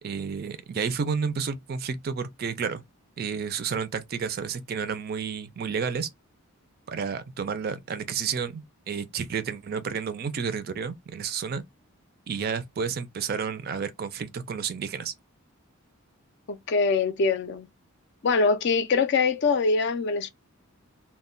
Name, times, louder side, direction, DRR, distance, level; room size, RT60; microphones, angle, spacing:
voice 1, 0.0-2.8 3.2-6.1 6.9-11.6 12.3-15.1, right 6 dB, 40° right, 0.3 m, -31 dB
voice 2, 16.5-17.7 18.2-20.3, left 4 dB, 50° left, 0.4 m, -23 dB
2.1 x 2.1 x 3.6 m
head